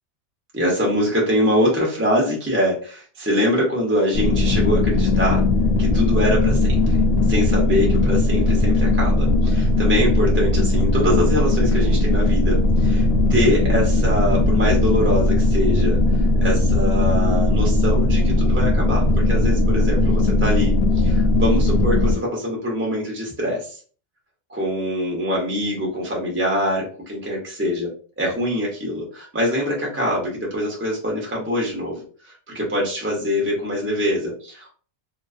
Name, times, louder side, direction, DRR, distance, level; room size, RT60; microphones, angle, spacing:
voice 1, 0.5-5.4 5.8-7.0 7.3-16.0 16.4-23.8 24.5-27.9 28.2-34.7, equal, 15° right, -3 dB, 0.5 m, -24 dB
sound 1, 4.1-22.2, left 2 dB, 65° left, 0.8 m, -18 dB
2.3 x 2.3 x 2.3 m, 0.42 s
omnidirectional pair, 1.2 m